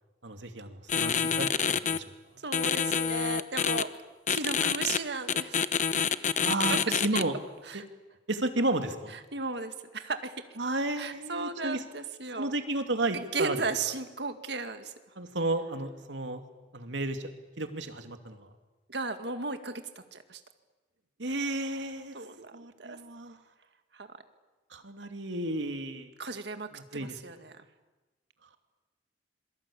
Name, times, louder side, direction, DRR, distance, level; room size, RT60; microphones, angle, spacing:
voice 1, 0.2-2.0 6.4-7.3 7.7-7.8 8.3-9.2 10.6-11.8 12.4-13.6 15.2-16.4 16.7-17.3 17.6-18.5 21.2-22.1 22.5-23.4 24.7-26.1 26.7-27.2, right 2 dB, 85° right, 6 dB, 2.5 m, -32 dB
sound 1, 0.9-2.0 2.5-3.8 4.3-5.0 5.3-7.2, left 7 dB, 40° left, 0.9 m, -27 dB
voice 2, 2.4-4.0 4.3-5.7 6.7-7.2 7.7-7.8 9.3-10.4 11.0-12.5 13.1-14.9 18.9-19.8 20.1-20.4 22.1-23.0 23.9-24.2 26.2-27.6, right 3 dB, 65° right, 8 dB, 2.1 m, -35 dB
26.5 x 23.5 x 8.6 m, 1.2 s
head